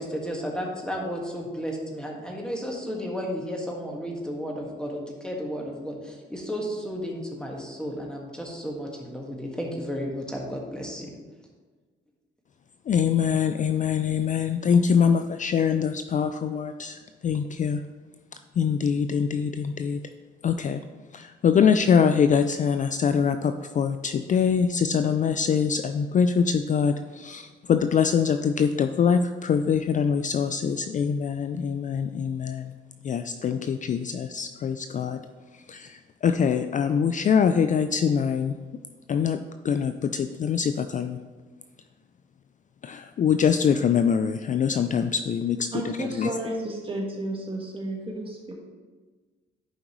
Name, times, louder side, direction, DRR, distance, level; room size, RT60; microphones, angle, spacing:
voice 1, 0.0-11.1, equal, 5° left, -1 dB, 1.7 m, -33 dB
voice 2, 12.9-17.8 18.6-20.0 20.4-20.8 21.1-32.7 33.0-35.2 35.7-38.5 39.1-39.4 39.6-41.2 42.8-46.3, left 7 dB, 40° left, 9 dB, 0.4 m, -24 dB
voice 3, 45.7-48.5, right 1 dB, 25° right, -1 dB, 1.7 m, -32 dB
11.0 x 5.1 x 3.1 m, 1.4 s
cardioid pair, 90°, 20 cm